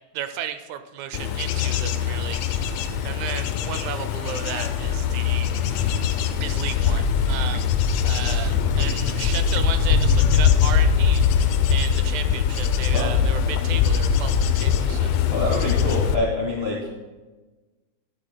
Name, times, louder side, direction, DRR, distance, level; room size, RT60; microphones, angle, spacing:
voice 1, 0.1-2.7 3.0-5.5 6.4-7.7 8.0-15.1, right 10 dB, 80° right, 10 dB, 2.0 m, -34 dB
Bird / Insect / Wind, 1.1-16.2, left 7 dB, 75° left, 1.6 m, -22 dB
voice 2, 15.3-16.9, left 2 dB, 45° left, -3 dB, 0.8 m, -26 dB
11.5 x 11.0 x 2.2 m, 1.2 s
omnidirectional pair, 3.3 m